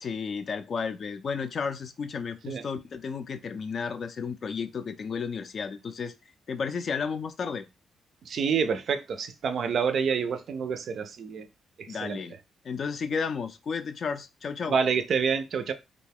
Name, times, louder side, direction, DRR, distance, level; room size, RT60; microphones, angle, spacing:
voice 1, 0.0-6.1 6.5-7.7 11.9-12.4 12.6-14.8, left 5 dB, 50° left, 0.4 m, -33 dB
voice 2, 8.2-11.5 11.8-12.2 14.7-15.7, right 6 dB, 60° right, 0.4 m, -28 dB
2.4 x 2.2 x 3.4 m
cardioid pair, 90°, 0 cm